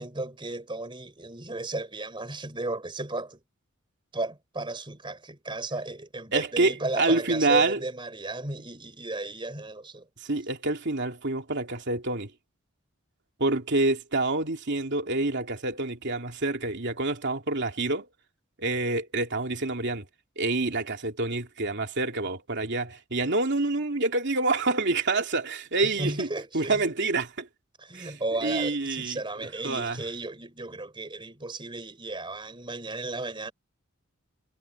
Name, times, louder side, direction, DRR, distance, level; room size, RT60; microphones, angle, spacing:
voice 1, 0.0-3.4 4.1-10.1 25.8-26.8 27.8-33.5, right 2 dB, 25° right, 4.1 m, -34 dB
voice 2, 6.3-7.8 10.2-12.3 13.4-18.1 18.6-20.0 20.4-26.3 26.5-27.5 27.9-29.2 29.6-30.0, right 2 dB, 55° right, 2.9 m, -27 dB
head